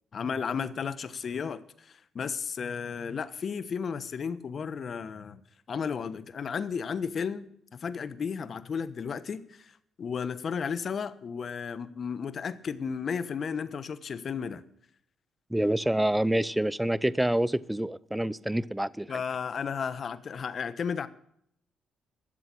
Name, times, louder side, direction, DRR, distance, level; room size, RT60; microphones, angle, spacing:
voice 1, 0.1-5.4 5.7-7.5 7.7-9.7 10.0-14.6 19.1-21.1, left 6 dB, 50° left, 1.1 m, -33 dB
voice 2, 15.5-19.2, right 1 dB, 5° right, 0.5 m, -27 dB
12.5 x 7.4 x 9.8 m
cardioid pair, 90°, 0 cm